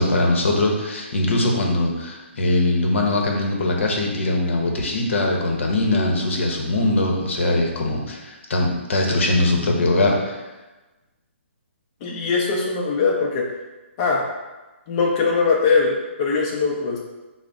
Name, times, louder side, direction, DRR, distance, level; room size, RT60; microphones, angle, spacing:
voice 1, 0.0-10.4, left 2 dB, 70° left, 1 dB, 0.8 m, -21 dB
voice 2, 12.0-13.4 14.0-14.2 14.9-17.0, left 4 dB, 30° left, -2 dB, 0.5 m, -21 dB
3.9 x 2.0 x 3.5 m, 1.1 s
hypercardioid pair, 155°, 7 cm